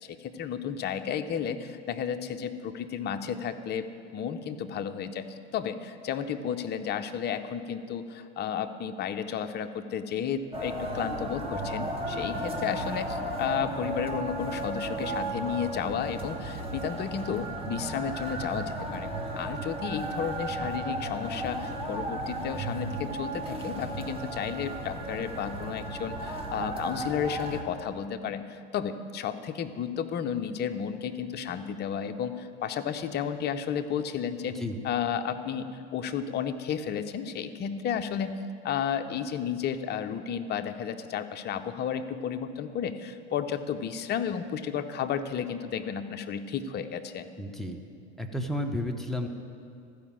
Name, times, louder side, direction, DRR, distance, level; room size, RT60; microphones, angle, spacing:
voice 1, 0.0-47.3, left 8 dB, 30° left, 8 dB, 0.6 m, -33 dB
sound 1, 10.5-27.6, right 1 dB, 15° right, 1.4 m, -34 dB
voice 2, 47.4-47.8 48.2-49.3, left 1 dB, ahead, 2 dB, 0.8 m, -32 dB
14.0 x 5.0 x 7.3 m, 2.5 s
hypercardioid pair, 90°, 34 cm